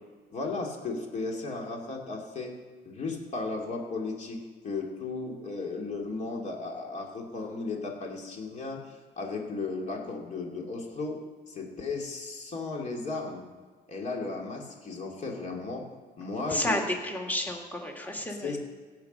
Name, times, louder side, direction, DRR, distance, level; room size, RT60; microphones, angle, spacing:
voice 1, 0.3-2.5 2.8-11.2 11.5-13.4 13.9-15.8 16.2-16.8 18.4-18.6, left 3 dB, 45° left, 0 dB, 2.9 m, -35 dB
voice 2, 16.5-18.6, left 1 dB, 10° left, 2 dB, 1.9 m, -31 dB
16.5 x 6.2 x 5.6 m, 1.5 s
cardioid pair, 110°, 17 cm